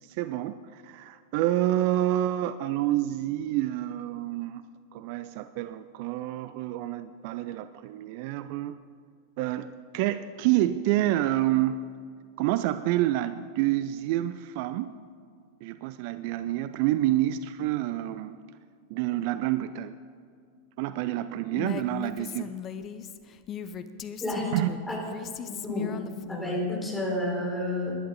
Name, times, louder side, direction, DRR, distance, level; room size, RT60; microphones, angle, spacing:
voice 1, 0.0-4.7 4.9-8.7 9.4-11.8 12.4-15.0 15.6-18.4 18.9-20.0 20.8-22.6 24.5-24.7, right 14 dB, 45° right, 13 dB, 0.4 m, -28 dB
Female speech woman speaking, 21.6-26.7, left 8 dB, 30° left, 0.6 m, -38 dB
voice 2, 24.2-24.5 24.9-25.0 25.4-25.9 26.3-27.9, left 1 dB, 10° left, -3 dB, 4.4 m, -30 dB
19.0 x 11.5 x 3.8 m, 2.1 s
figure-of-eight pair, 90°, 0 cm